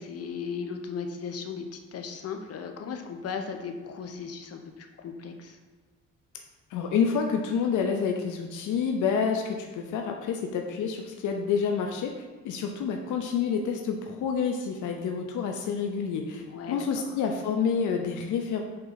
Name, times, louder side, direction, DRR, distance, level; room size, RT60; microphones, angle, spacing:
voice 1, 0.0-5.6 16.4-17.0, left 6 dB, 55° left, 5 dB, 0.9 m, -37 dB
voice 2, 6.7-12.1 12.4-18.6, left 6 dB, 85° left, 3 dB, 0.7 m, -28 dB
5.6 x 3.9 x 5.7 m, 1.4 s
cardioid pair, 90°, 30 cm